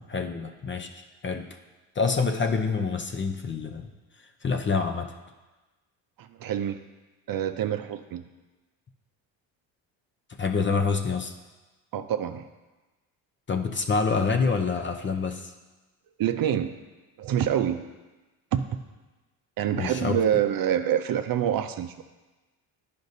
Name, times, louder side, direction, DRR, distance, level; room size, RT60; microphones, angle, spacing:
voice 1, 0.1-1.4 1.9-3.9 4.4-5.1 10.3-11.3 13.5-15.5 19.7-20.4, left 4 dB, 25° left, 6 dB, 0.5 m, -27 dB
voice 2, 6.2-6.8 7.3-8.2 11.9-12.5 16.2-16.7 17.2-17.9 18.5-18.6 19.6-22.0, right 10 dB, 45° right, 9 dB, 0.5 m, -26 dB
10.5 x 5.2 x 2.7 m, 1.2 s
supercardioid pair, 70°, 47 cm